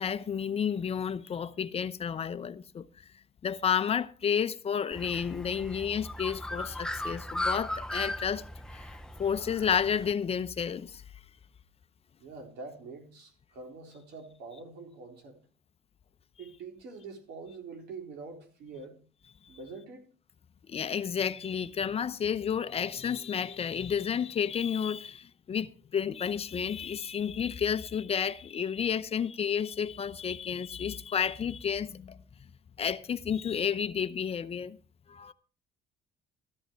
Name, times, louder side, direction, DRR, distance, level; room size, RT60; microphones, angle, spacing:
voice 1, 0.0-2.8 3.4-8.4 8.7-8.9 9.2-11.0 20.6-32.2 32.8-34.8 35.1-35.3, left 7 dB, 35° left, 0.8 m, -31 dB
Bird, 4.9-10.1, left 1 dB, 5° left, 0.6 m, -37 dB
voice 2, 12.2-15.4 16.4-19.0 19.5-20.1, right 4 dB, 75° right, 3.9 m, -45 dB
14.0 x 11.0 x 4.5 m
cardioid pair, 110°, 17 cm